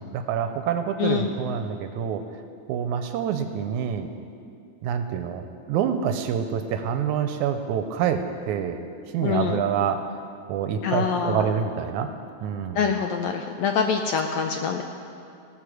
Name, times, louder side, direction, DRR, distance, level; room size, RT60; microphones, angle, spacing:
voice 1, 0.0-2.2 2.7-4.1 4.8-8.8 9.1-10.1 10.5-12.1 12.4-12.8, right 8 dB, 80° right, 8 dB, 1.9 m, -27 dB
voice 2, 1.0-1.3 9.2-9.6 10.8-11.5 12.7-14.8, left 6 dB, 80° left, 5 dB, 1.6 m, -25 dB
18.5 x 6.7 x 6.4 m, 2.4 s
omnidirectional pair, 3.7 m